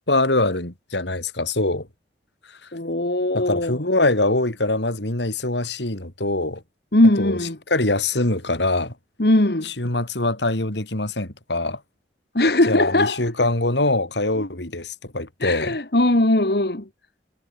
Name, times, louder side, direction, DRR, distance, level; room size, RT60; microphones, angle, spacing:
voice 1, 0.1-1.9 2.5-2.7 3.3-6.6 7.2-7.4 7.7-9.0 9.6-11.8 12.7-15.8, left 2 dB, 80° left, 4.0 m, -23 dB
voice 2, 2.7-3.8 6.9-7.6 9.2-9.7 12.4-13.2 15.4-16.9, left 1 dB, 60° left, 1.8 m, -19 dB
head